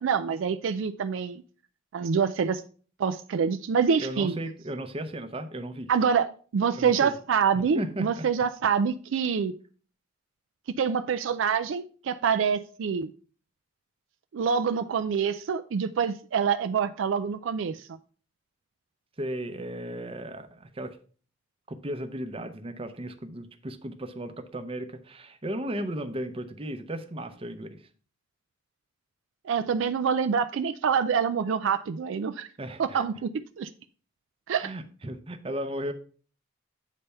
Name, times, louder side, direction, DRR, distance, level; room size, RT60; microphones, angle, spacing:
voice 1, 0.0-1.4 1.9-2.6 3.0-4.4 5.9-9.5 10.8-13.1 14.3-17.9 29.4-32.5 32.8-33.7 34.5-34.7, right 6 dB, 65° right, 10 dB, 0.4 m, -26 dB
voice 2, 4.0-5.9 6.7-7.1 7.5-8.3 19.2-21.0 21.7-27.8 32.6-33.0 34.6-35.9, right 1 dB, 30° right, 8 dB, 0.7 m, -35 dB
8.2 x 3.4 x 5.4 m, 0.42 s
head